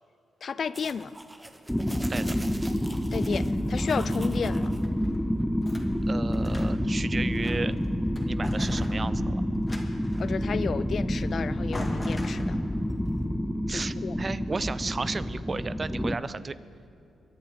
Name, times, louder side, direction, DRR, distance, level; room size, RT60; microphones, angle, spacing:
voice 1, 0.4-1.2 3.1-4.7 10.2-12.6 13.7-14.3, left 6 dB, 60° left, 16 dB, 0.5 m, -32 dB
sound 1, 0.7-4.9, right 1 dB, 15° right, 1.3 m, -45 dB
sound 2, 1.7-16.1, equal, 5° left, 0.9 m, -28 dB
sound 3, 4.6-5.9 6.3-6.9 7.3-7.8 8.2-10.3 11.3-11.4 11.7-12.9, left 1 dB, 25° left, 2.1 m, -40 dB
voice 2, 6.1-7.8 8.2-9.4 13.7-16.6, right 4 dB, 40° right, 15 dB, 0.4 m, -33 dB
23.0 x 10.5 x 5.1 m, 2.8 s
supercardioid pair, 50°, 0 cm